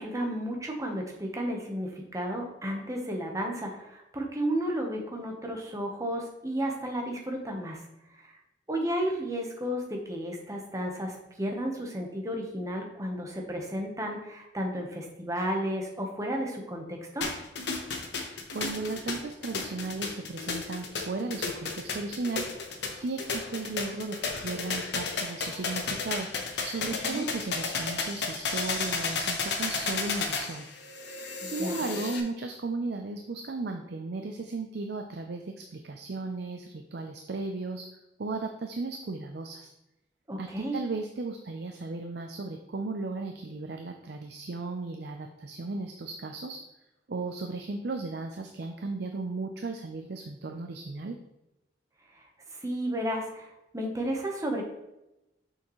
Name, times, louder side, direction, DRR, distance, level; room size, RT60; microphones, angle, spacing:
voice 1, 0.0-7.8 8.1-8.4 8.7-17.3 26.9-27.3 31.4-31.8 40.3-40.8 52.1-54.6, equal, 15° right, 1 dB, 1.0 m, -33 dB
sound 1, 17.2-32.2, left 4 dB, 70° left, 1.0 m, -33 dB
voice 2, 18.5-26.3 26.6-30.7 31.4-37.8 38.2-39.7 40.4-46.6 47.1-51.2, right 3 dB, 60° right, 4 dB, 0.5 m, -35 dB
6.5 x 5.9 x 3.1 m, 0.93 s
head